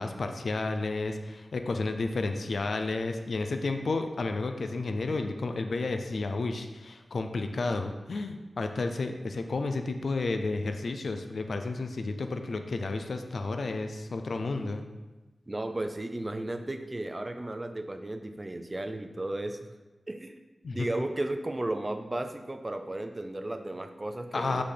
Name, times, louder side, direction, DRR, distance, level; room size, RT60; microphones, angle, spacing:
voice 1, 0.0-14.8 20.6-20.9 24.3-24.6, left 3 dB, 75° left, 6 dB, 0.5 m, -31 dB
voice 2, 15.5-19.7 20.1-20.4 20.7-24.6, right 1 dB, 25° right, 7 dB, 0.5 m, -34 dB
6.2 x 4.1 x 5.8 m, 1.2 s
wide cardioid pair, 100°, 0 cm